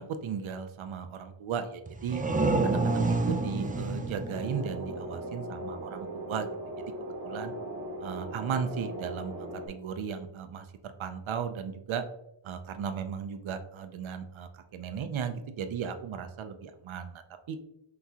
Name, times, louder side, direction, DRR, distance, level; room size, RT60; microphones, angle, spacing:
voice 1, 0.0-2.2 2.6-6.5 7.2-7.5 8.0-9.3 9.7-12.0 12.4-17.2 17.5-17.6, right 7 dB, 70° right, 8 dB, 0.6 m, -36 dB
sound 1, 1.9-5.5, right 3 dB, 20° right, 0.3 m, -29 dB
sound 2, 4.3-9.7, right 1 dB, 35° right, 1.0 m, -39 dB
5.8 x 3.0 x 2.8 m, 0.79 s
wide cardioid pair, 125°, 49 cm